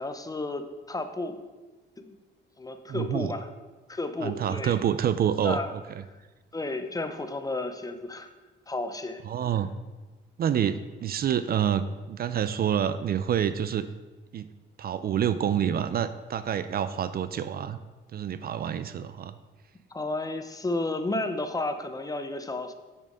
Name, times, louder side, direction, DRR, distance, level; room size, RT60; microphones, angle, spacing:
voice 1, 0.0-1.5 2.0-2.2 2.6-3.5 3.9-4.7 5.4-5.7 6.5-8.3 8.7-9.2 19.9-22.7, left 2 dB, 20° left, 8 dB, 0.7 m, -32 dB
voice 2, 2.9-3.3 4.2-5.6 6.0-6.1 9.3-9.7 10.4-13.9 14.3-14.5 14.8-17.8 18.1-19.4, right 9 dB, 50° right, 13 dB, 0.4 m, -27 dB
6.5 x 6.4 x 5.1 m, 1.2 s
cardioid pair, 90°, 20 cm